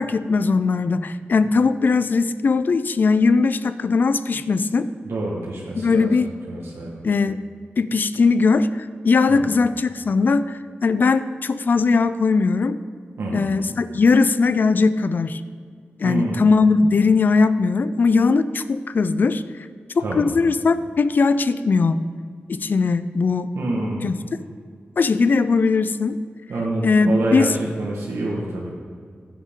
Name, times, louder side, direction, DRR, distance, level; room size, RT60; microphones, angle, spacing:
voice 1, 0.0-4.9 5.8-6.3 7.0-7.4 7.8-12.8 13.3-15.4 16.0-19.4 20.0-22.0 22.5-23.5 24.0-24.2 25.0-26.2 26.8-27.5, left 4 dB, 50° left, 13 dB, 0.4 m, -19 dB
voice 2, 5.0-7.1 9.3-9.5 13.2-13.6 16.0-16.5 20.0-20.2 23.5-24.1 26.5-28.7, right 2 dB, 85° right, -5 dB, 1.6 m, -27 dB
15.5 x 9.5 x 3.8 m, 2.1 s
wide cardioid pair, 170°, 4 cm